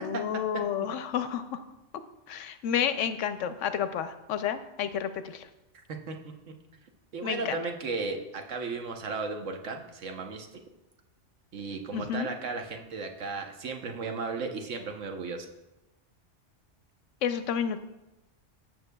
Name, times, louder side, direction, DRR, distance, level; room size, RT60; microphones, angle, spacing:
voice 1, 0.0-1.6 2.3-5.4 7.2-7.6 11.9-12.3 17.2-17.8, left 8 dB, 85° left, 11 dB, 1.0 m, -30 dB
voice 2, 5.7-6.2 7.1-10.5 11.5-15.5, right 4 dB, 90° right, 4 dB, 1.3 m, -35 dB
14.5 x 6.5 x 2.3 m, 0.97 s
omnidirectional pair, 1.2 m